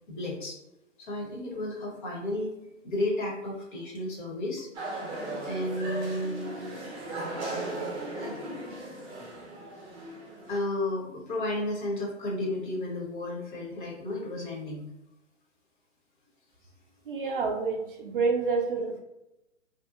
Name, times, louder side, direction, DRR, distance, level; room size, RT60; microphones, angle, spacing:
voice 1, 0.1-0.6 1.0-2.5 2.8-4.7 5.4-6.7 8.1-8.6 10.5-14.9 17.2-17.3, left 1 dB, 40° left, -2 dB, 0.9 m, -33 dB
sound 1, 4.7-10.6, right 2 dB, 20° right, 0.7 m, -37 dB
voice 2, 17.1-19.0, right 4 dB, 45° right, 1 dB, 0.4 m, -28 dB
2.7 x 2.1 x 2.4 m, 0.93 s
hypercardioid pair, 130°, 38 cm